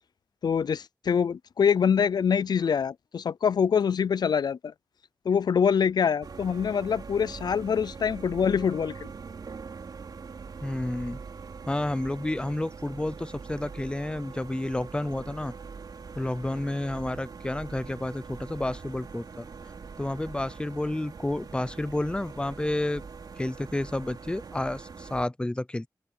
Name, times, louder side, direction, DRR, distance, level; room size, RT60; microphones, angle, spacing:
voice 1, 0.4-4.7 5.3-9.1, left 7 dB, 85° left, 0.5 m, -25 dB
sound 1, 6.2-25.3, right 5 dB, 80° right, 3.7 m, -43 dB
voice 2, 10.6-11.2 11.7-15.5 16.2-19.5 20.0-23.1 23.4-25.9, left 1 dB, 15° left, 0.6 m, -30 dB
wide cardioid pair, 105°, 7 cm